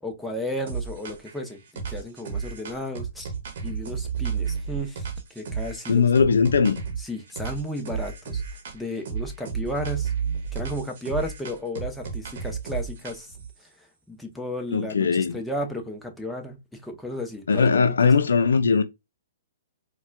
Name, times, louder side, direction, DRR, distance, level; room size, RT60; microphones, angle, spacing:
voice 1, 0.0-3.3 3.6-6.1 7.0-8.4 8.7-10.1 10.5-13.3 13.6-13.7 14.1-18.1, left 1 dB, 5° left, 0.7 m, -34 dB
sound 1, 0.7-1.4 1.8-7.0 7.4-8.8 9.1-13.5, right 6 dB, 60° right, 0.9 m, -32 dB
voice 2, 5.9-6.8 14.7-15.3 17.5-18.8, left 5 dB, 80° left, 0.4 m, -19 dB
4.1 x 2.2 x 2.2 m
hypercardioid pair, 130°, 0 cm